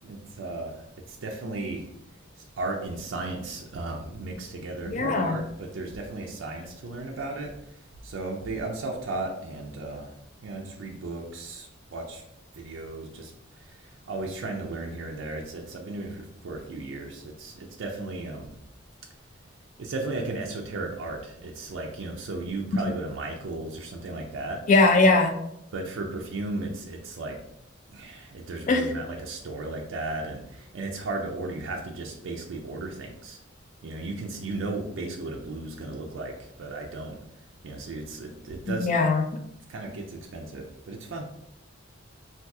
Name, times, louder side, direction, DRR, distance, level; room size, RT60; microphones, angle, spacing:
voice 1, 0.0-1.9 2.4-7.5 8.0-10.1 10.4-12.2 12.6-13.3 13.6-18.5 19.8-24.6 25.7-27.4 27.9-33.4 33.8-37.2 37.6-38.9 39.7-41.3, right 2 dB, 70° right, 1 dB, 0.4 m, -35 dB
voice 2, 4.9-5.4 24.7-25.3 28.7-28.9 38.7-39.2, left 3 dB, 40° left, 6 dB, 0.3 m, -20 dB
2.7 x 2.3 x 3.4 m, 0.77 s
head